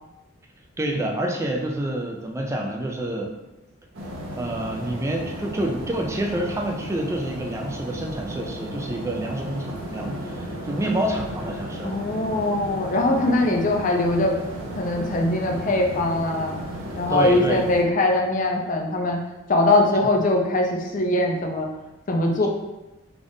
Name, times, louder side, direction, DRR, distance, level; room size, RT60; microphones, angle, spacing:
voice 1, 0.8-3.3 4.3-11.9 17.1-17.6, right 1 dB, 15° right, 1 dB, 0.3 m, -27 dB
sound 1, 3.9-17.8, equal, 90° right, 0.8 m, -34 dB
voice 2, 11.8-14.3 14.8-16.6 17.0-19.2 19.5-21.7 22.1-22.5, left 2 dB, 40° left, 2 dB, 0.5 m, -21 dB
3.5 x 2.4 x 3.8 m, 1.0 s
head